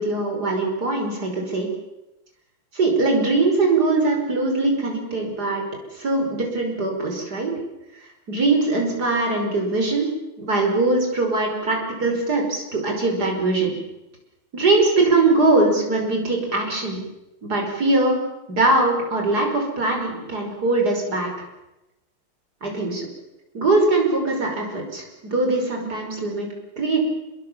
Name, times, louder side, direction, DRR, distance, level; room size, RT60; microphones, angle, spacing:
voice 1, 0.0-1.7 2.7-5.6 5.9-7.6 8.3-13.8 14.5-17.0 17.4-18.2 18.5-21.3 22.6-23.1 23.5-26.5 26.8-27.0, right 2 dB, 45° right, 1 dB, 6.0 m, -21 dB
27.5 x 21.0 x 7.3 m, 0.96 s
omnidirectional pair, 2.4 m